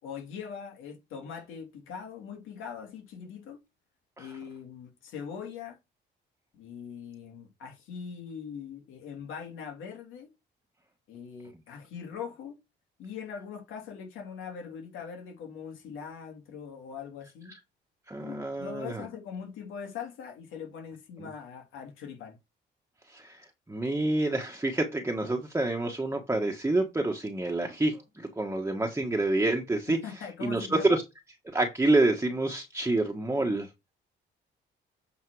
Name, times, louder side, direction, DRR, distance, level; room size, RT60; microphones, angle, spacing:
voice 1, 0.0-3.6 4.2-5.8 6.5-10.3 11.1-12.6 13.0-17.5 18.2-22.4 30.0-31.0, left 7 dB, 90° left, 2.9 m, -41 dB
voice 2, 18.1-19.0 21.2-21.3 23.1-30.0 30.4-31.0 31.5-33.7, right 2 dB, 15° right, 1.4 m, -28 dB
8.1 x 4.3 x 4.8 m
cardioid pair, 90°, 20 cm